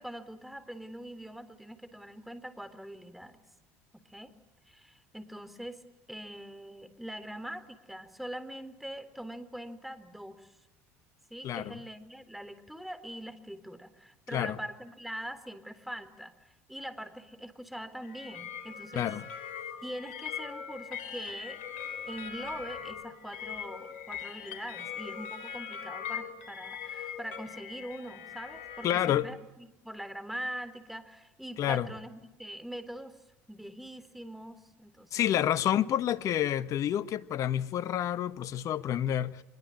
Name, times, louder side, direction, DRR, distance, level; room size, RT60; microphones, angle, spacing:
voice 1, 0.0-3.4 3.9-4.3 4.7-5.8 6.1-10.5 11.3-19.1 19.8-21.6 22.1-33.2 33.5-35.4, equal, ahead, 3.8 m, -43 dB
voice 2, 11.4-11.8 14.3-14.6 18.9-19.2 28.8-29.3 31.6-31.9 35.1-39.4, left 11 dB, 55° left, 1.4 m, -29 dB
sound 1, 18.0-29.1, left 8 dB, 80° left, 4.5 m, -41 dB
25.5 x 22.0 x 8.7 m
hypercardioid pair, 75°, 7 cm